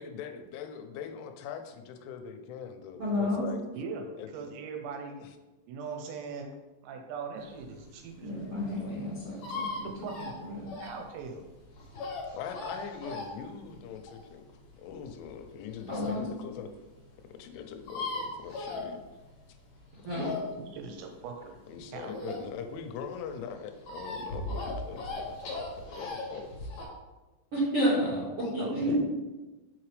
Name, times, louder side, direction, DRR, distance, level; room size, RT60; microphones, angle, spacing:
voice 1, 0.0-3.6 4.2-4.5 5.2-5.3 12.3-14.5 14.8-16.7 17.4-19.0 20.1-20.2 21.7-25.6 25.9-26.5 28.4-28.5, left 7 dB, 90° left, 6 dB, 3.1 m, -42 dB
voice 2, 3.0-3.4 8.2-9.7 10.2-10.7 15.9-16.2 20.0-20.3 27.5-29.0, equal, 65° right, -9 dB, 1.5 m, -30 dB
voice 3, 3.7-5.2 5.7-6.5 6.8-8.3 9.8-10.3 10.8-11.5 20.7-21.5 21.9-22.4 28.6-29.0, right 5 dB, 80° right, 4 dB, 2.8 m, -40 dB
sound 1, 7.6-16.2 16.7-16.8 17.0-17.1 17.2-17.3 17.5-19.4 19.8-22.8 23.1-26.9, left 2 dB, 70° left, 1.7 m, -38 dB
6.1 x 5.8 x 3.2 m, 1.1 s
omnidirectional pair, 5.3 m